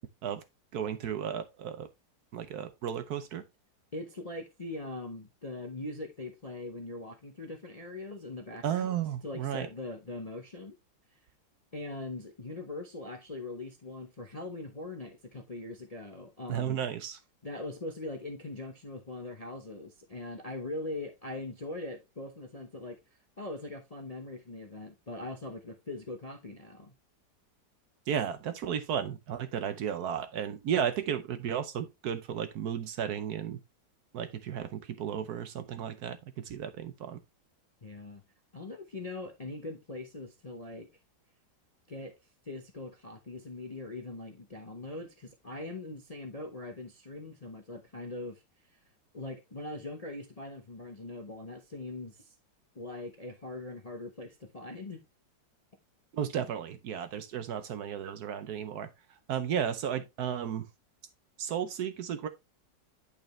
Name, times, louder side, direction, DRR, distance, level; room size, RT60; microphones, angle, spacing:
voice 1, 0.7-1.9 2.3-3.4 8.6-9.7 16.5-17.2 28.1-33.6 34.1-37.2 56.1-58.9 59.3-60.7 61.4-62.3, right 9 dB, 65° right, 1.1 m, -34 dB
voice 2, 3.9-8.9 9.2-10.7 11.7-16.8 17.4-26.9 37.8-38.2 38.5-40.9 41.9-42.2 42.4-48.4 48.7-48.8 49.1-52.3 52.7-55.0, left 2 dB, 35° left, 0.6 m, -41 dB
8.8 x 5.1 x 3.1 m
omnidirectional pair, 2.0 m